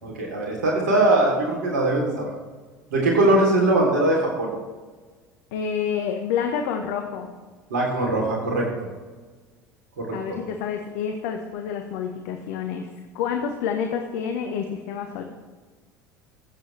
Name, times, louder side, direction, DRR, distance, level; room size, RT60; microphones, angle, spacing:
voice 1, 0.0-2.3 2.9-4.5 7.7-8.6 10.0-10.4, right 2 dB, 70° right, -1 dB, 3.4 m, -21 dB
voice 2, 5.5-7.3 10.1-12.9 13.1-15.2, left 7 dB, 60° left, 4 dB, 1.1 m, -28 dB
23.5 x 7.9 x 3.4 m, 1.4 s
figure-of-eight pair, 65°, 10 cm